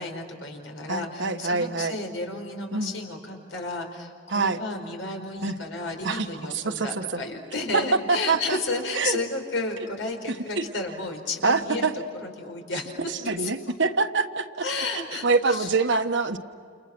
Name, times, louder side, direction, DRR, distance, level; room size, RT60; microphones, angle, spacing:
voice 1, 0.0-11.9 12.2-13.7 14.6-15.7, left 3 dB, 85° left, 3 dB, 5.0 m, -33 dB
voice 2, 0.9-1.9 2.7-2.9 4.3-4.6 5.4-5.5 6.0-6.3 6.5-7.2 7.7-7.8 8.1-8.6 8.9-9.2 10.5-10.6 11.4-11.9 13.3-14.6 15.2-16.4, right 4 dB, 65° right, 7 dB, 1.4 m, -25 dB
30.0 x 29.0 x 6.2 m, 2.2 s
head